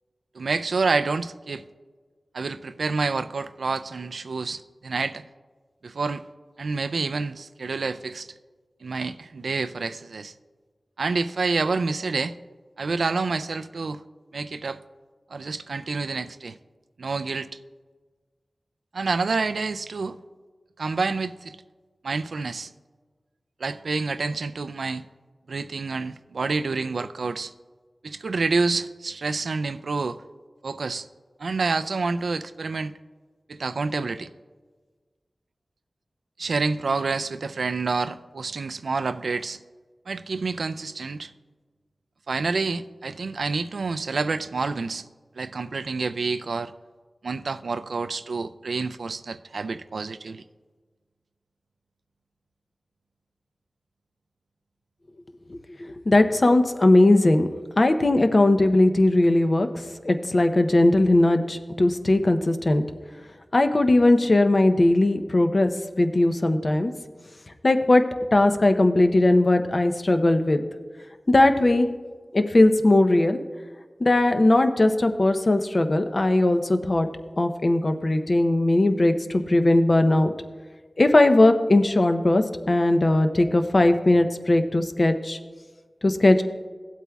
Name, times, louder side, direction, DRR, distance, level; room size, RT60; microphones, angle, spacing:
voice 1, 0.4-1.6 2.3-5.2 5.8-6.2 6.6-8.3 8.8-10.3 11.0-12.4 12.8-14.0 14.3-14.8 15.3-16.6 17.0-17.5 18.9-20.2 20.8-21.6 22.0-22.7 23.6-25.1 25.5-27.5 28.0-30.2 30.6-31.1 31.4-32.9 33.5-34.3 36.4-39.6 40.1-41.3 42.3-45.1 45.4-46.7 47.2-50.4, right 4 dB, 90° right, 11 dB, 0.3 m, -28 dB
voice 2, 56.1-57.5 57.8-59.7 60.0-62.8 63.5-65.7 66.0-66.9 67.6-68.1 68.3-70.6 71.3-71.9 72.3-73.4 74.0-77.1 77.4-80.3 81.0-85.4 86.0-86.4, left 2 dB, 45° left, 7 dB, 0.6 m, -19 dB
16.0 x 8.2 x 2.3 m, 1.4 s
wide cardioid pair, 70°, 0 cm